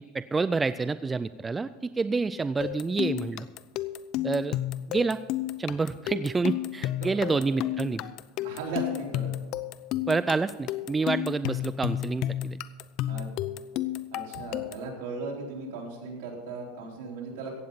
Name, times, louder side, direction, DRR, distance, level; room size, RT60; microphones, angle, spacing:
voice 1, 0.0-3.5 4.2-4.6 4.9-5.2 5.6-8.0 10.1-12.6, right 4 dB, 15° right, 14 dB, 0.3 m, -28 dB
sound 1, 2.6-14.9, left 13 dB, 50° left, 0.5 m, -32 dB
voice 2, 7.0-7.4 8.4-9.3 13.1-13.3 14.1-17.5, right 3 dB, 65° right, -1 dB, 4.1 m, -37 dB
15.5 x 8.7 x 5.6 m, 1.3 s
supercardioid pair, 145°, 0 cm